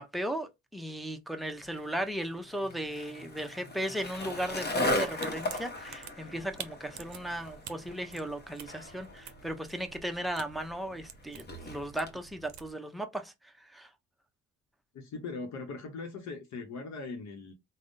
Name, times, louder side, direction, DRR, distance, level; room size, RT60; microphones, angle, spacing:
voice 1, 0.0-13.3 13.6-13.9, right 1 dB, ahead, 0.5 m, -36 dB
Skateboard, 1.6-12.2, left 1 dB, 35° left, 0.8 m, -38 dB
sound 1, 4.0-12.7, right 9 dB, 65° right, 0.6 m, -50 dB
voice 2, 14.9-17.5, left 4 dB, 65° left, 0.8 m, -40 dB
3.5 x 2.1 x 2.6 m
cardioid pair, 90°, 30 cm